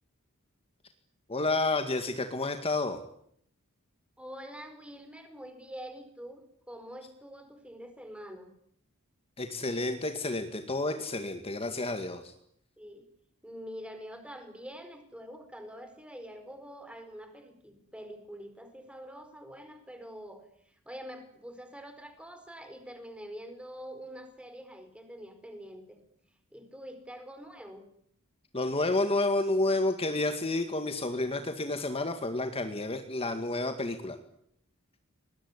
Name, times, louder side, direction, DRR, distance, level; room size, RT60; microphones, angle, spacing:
voice 1, 1.3-3.0 9.4-12.3 28.5-34.2, left 2 dB, 30° left, 6 dB, 2.0 m, -30 dB
voice 2, 4.2-6.4 6.7-8.5 12.8-13.1 13.4-20.4 20.8-26.0 26.5-27.9, equal, 5° right, 8 dB, 4.7 m, -45 dB
24.5 x 20.5 x 9.9 m, 0.69 s
head